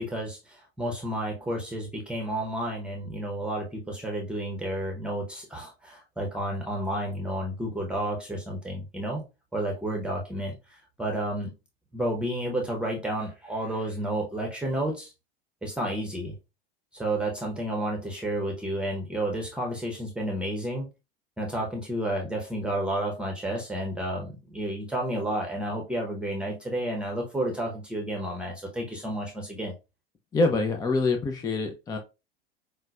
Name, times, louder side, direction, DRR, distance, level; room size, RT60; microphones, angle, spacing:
voice 1, 0.0-9.2 9.5-11.5 11.9-15.1 15.6-16.3 16.9-20.9 21.4-29.7, right 1 dB, 5° right, -1 dB, 0.8 m, -31 dB
voice 2, 30.3-32.0, left 3 dB, 10° left, 4 dB, 0.4 m, -25 dB
5.5 x 2.1 x 2.4 m, 0.27 s
hypercardioid pair, 90°, 31 cm